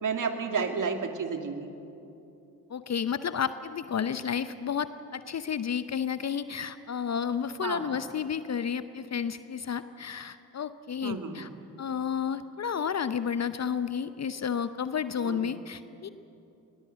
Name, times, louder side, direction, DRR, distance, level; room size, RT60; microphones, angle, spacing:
voice 1, 0.0-1.7 7.6-7.9 11.0-11.5 15.2-15.6, right 5 dB, 40° right, 6 dB, 2.4 m, -31 dB
voice 2, 2.7-11.5 11.8-16.1, left 7 dB, 35° left, 13 dB, 0.8 m, -31 dB
20.5 x 20.0 x 7.6 m, 2.8 s
hypercardioid pair, 50°, 47 cm